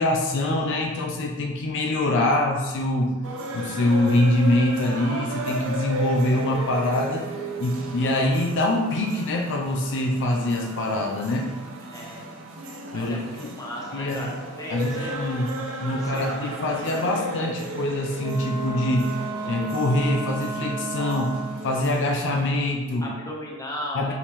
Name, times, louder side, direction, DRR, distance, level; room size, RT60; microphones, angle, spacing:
voice 1, 0.0-3.2 3.5-7.3 7.6-11.5 12.9-13.5 13.9-14.3 14.7-15.5 15.8-21.4 21.6-23.1 23.9-24.1, left 1 dB, 60° left, 1 dB, 0.5 m, -24 dB
sound 1, 3.2-22.5, right 1 dB, 65° right, 0.6 m, -35 dB
voice 2, 11.8-12.3 12.9-15.2 15.9-16.5 23.0-24.1, left 1 dB, 15° left, -3 dB, 0.7 m, -36 dB
Wind instrument woodwind instrument, 18.2-21.8, right 2 dB, 15° right, 0.5 m, -33 dB
4.5 x 3.0 x 3.5 m, 1.2 s
head